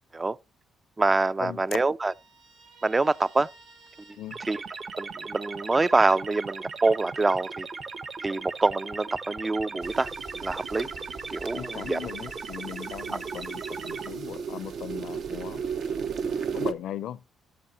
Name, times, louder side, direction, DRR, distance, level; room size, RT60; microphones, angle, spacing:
voice 1, 1.0-2.1 2.8-3.5 4.5-4.6 5.0-7.7 8.2-10.1 10.4-10.9 11.3-12.0, right 3 dB, 25° right, 0.4 m, -25 dB
Guitar, 2.0-5.6, right 3 dB, 80° right, 1.9 m, -55 dB
sound 1, 4.3-14.1, right 4 dB, 45° right, 1.1 m, -38 dB
sound 2, 9.8-16.7, right 6 dB, 65° right, 0.9 m, -35 dB
voice 2, 11.5-15.6 16.5-17.2, left 11 dB, 80° left, 0.5 m, -38 dB
15.0 x 6.8 x 2.8 m
cardioid pair, 90°, 0 cm